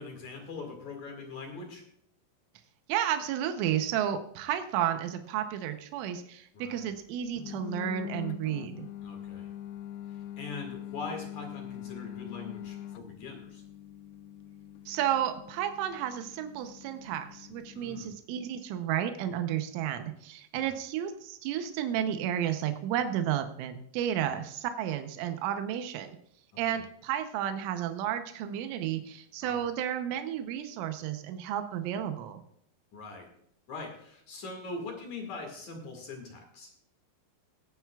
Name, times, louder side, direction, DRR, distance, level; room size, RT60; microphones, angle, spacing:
voice 1, 0.0-1.8 6.5-6.9 9.0-9.5 10.1-13.6 17.7-18.1 20.5-20.7 24.2-24.3 26.5-26.8 29.4-29.6 32.9-33.3 33.7-36.7, left 3 dB, 50° left, 2 dB, 2.7 m, -42 dB
voice 2, 2.9-8.9 14.9-26.2 26.6-32.4, right 10 dB, 90° right, 7 dB, 3.4 m, -32 dB
sound 1, 7.4-18.2, left 12 dB, 85° left, 2.4 m, -43 dB
21.5 x 9.2 x 2.4 m, 0.72 s
omnidirectional pair, 5.5 m